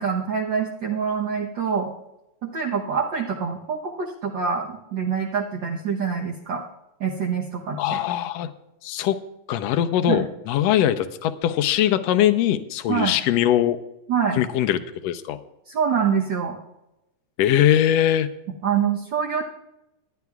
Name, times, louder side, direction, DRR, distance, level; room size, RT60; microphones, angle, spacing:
voice 1, 0.0-1.9 2.4-6.6 7.0-8.0 10.1-10.2 12.9-13.1 14.1-14.4 15.7-16.6 18.6-19.4, right 6 dB, 65° right, -1 dB, 1.1 m, -25 dB
voice 2, 7.8-8.5 8.8-9.2 9.5-13.8 14.4-15.4 17.4-18.3, left 11 dB, 75° left, 10 dB, 1.7 m, -21 dB
26.0 x 10.5 x 2.4 m, 0.93 s
omnidirectional pair, 3.4 m